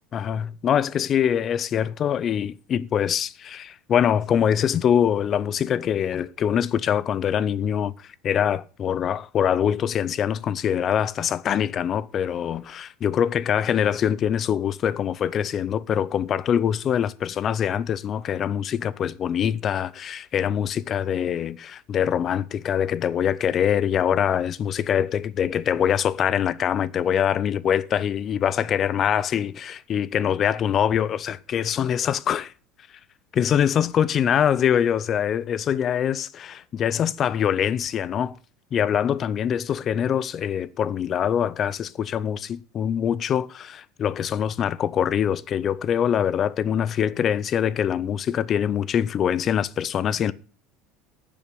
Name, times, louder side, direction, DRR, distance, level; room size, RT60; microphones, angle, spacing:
voice 1, 0.1-32.5 33.3-38.4 38.7-50.3, left 9 dB, 30° left, 0.5 m, -24 dB
10.5 x 7.1 x 6.8 m
cardioid pair, 160°, 0 cm